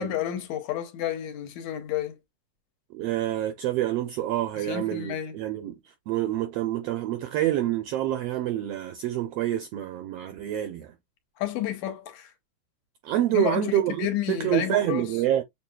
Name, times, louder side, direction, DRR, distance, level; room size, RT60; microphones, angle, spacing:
voice 1, 0.0-2.2 4.6-5.4 11.4-12.3 13.3-13.7 14.0-15.1, left 11 dB, 80° left, 2.1 m, -30 dB
voice 2, 2.9-10.9 13.0-15.4, right 12 dB, 85° right, 1.4 m, -27 dB
7.1 x 2.7 x 2.2 m
omnidirectional pair, 3.4 m